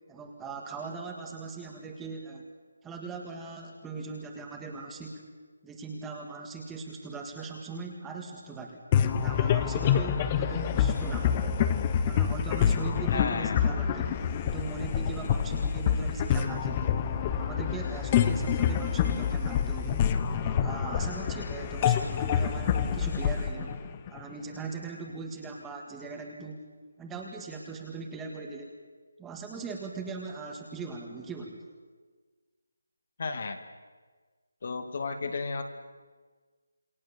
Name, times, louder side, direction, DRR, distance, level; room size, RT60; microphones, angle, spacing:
voice 1, 0.1-2.5 2.8-5.2 5.6-8.8 9.1-11.6 12.0-14.2 14.4-16.9 17.3-20.0 20.4-23.8 24.1-26.6 27.0-28.8 29.2-31.6, right 4 dB, 5° right, 1 dB, 1.7 m, -40 dB
sound 1, 8.9-24.6, left 8 dB, 20° left, 1.0 m, -27 dB
voice 2, 13.1-13.6 33.2-33.6 34.6-35.6, left 4 dB, 45° left, 7 dB, 2.2 m, -33 dB
28.0 x 23.0 x 7.1 m, 1.4 s
figure-of-eight pair, 175°, 0 cm